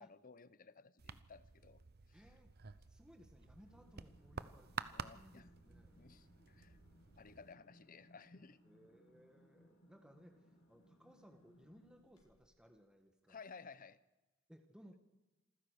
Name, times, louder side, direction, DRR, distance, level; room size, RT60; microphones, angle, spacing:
voice 1, 0.0-1.8 2.1-2.2 4.9-5.5 5.9-6.8 7.2-8.6 13.3-14.0, left 5 dB, 45° left, 16 dB, 0.8 m, -57 dB
sound 1, 1.0-7.5, right 6 dB, 50° right, 0.9 m, -51 dB
voice 2, 2.1-2.5 2.9-6.0 8.6-13.4 14.5-15.0, equal, 5° right, 5 dB, 1.4 m, -63 dB
sound 2, 3.4-12.6, equal, 85° left, 6.6 m, -68 dB
27.0 x 15.0 x 6.5 m, 1.1 s
head